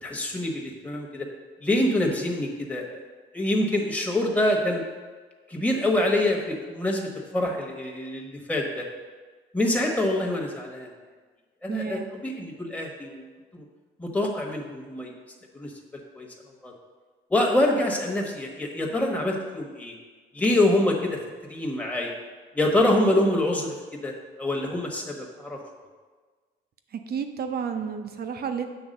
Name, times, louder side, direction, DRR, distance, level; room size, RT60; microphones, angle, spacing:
voice 1, 0.0-1.3 1.6-3.0 3.3-4.8 5.5-8.9 9.5-10.9 11.6-13.3 13.5-13.6 14.0-15.1 15.5-15.7 16.1-16.3 16.6-16.7 17.3-19.9 20.3-21.2 21.5-22.1 22.5-23.7 24.0-25.6, left 1 dB, 5° left, -1 dB, 1.2 m, -25 dB
voice 2, 11.7-12.1 27.1-28.7, right 6 dB, 50° right, 6 dB, 0.7 m, -31 dB
8.0 x 3.4 x 6.5 m, 1.4 s
cardioid pair, 90°, 20 cm